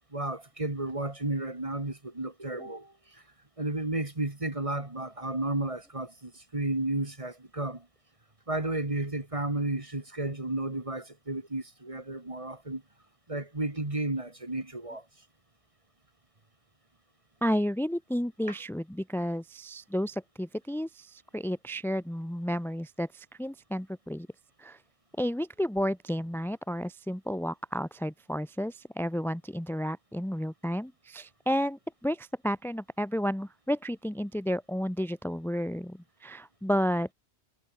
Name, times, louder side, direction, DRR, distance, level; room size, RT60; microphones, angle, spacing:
voice 1, 0.1-3.2 3.6-7.9 8.5-12.8 13.3-15.0 18.5-18.6, right 2 dB, 30° right, 2.4 m, -33 dB
voice 2, 17.4-24.3 24.6-24.8 25.2-37.1, equal, ahead, 1.2 m, -32 dB
omnidirectional pair, 1.1 m